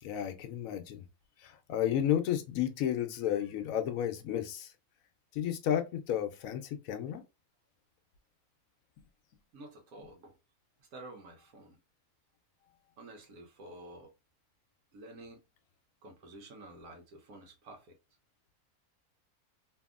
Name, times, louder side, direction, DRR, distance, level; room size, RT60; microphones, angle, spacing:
voice 1, 0.0-1.0 1.4-4.7 5.3-7.2, left 10 dB, 75° left, 1.0 m, -32 dB
voice 2, 9.5-10.4 10.8-11.8 13.0-14.1 14.9-15.5 16.0-18.0, right 2 dB, 80° right, 1.4 m, -50 dB
2.8 x 2.7 x 2.4 m
omnidirectional pair, 1.6 m